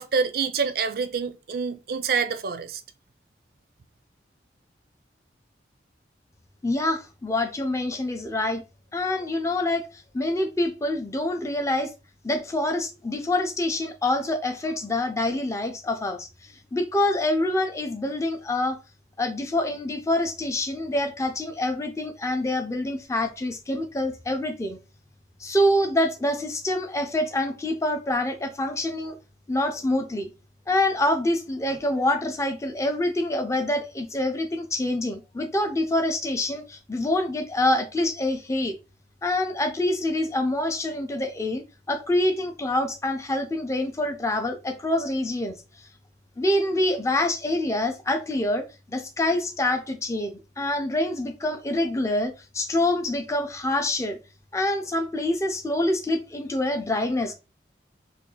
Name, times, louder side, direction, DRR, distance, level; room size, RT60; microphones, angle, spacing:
voice 1, 0.0-2.8, right 5 dB, 55° right, 0.4 m, -27 dB
voice 2, 6.6-8.6 8.9-11.9 12.2-18.8 19.2-24.8 25.4-29.2 29.5-30.3 30.7-38.8 39.2-45.9 46.4-54.2 54.5-57.3, left 1 dB, 15° left, 0.4 m, -26 dB
2.6 x 2.3 x 3.8 m
head